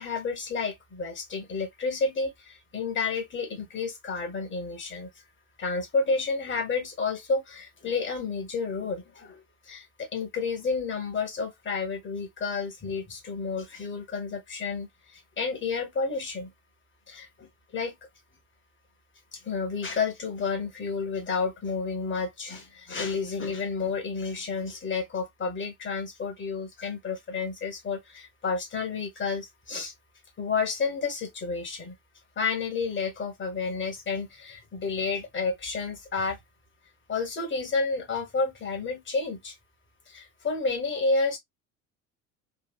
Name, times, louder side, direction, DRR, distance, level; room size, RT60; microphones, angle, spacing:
voice 1, 0.0-5.1 5.6-16.5 17.1-17.5 17.7-17.9 19.3-29.9 30.4-31.9 32.4-36.4 37.1-39.5 40.1-41.4, left 4 dB, 25° left, 1.5 m, -30 dB
3.4 x 2.7 x 2.3 m
figure-of-eight pair, 65°, 45 cm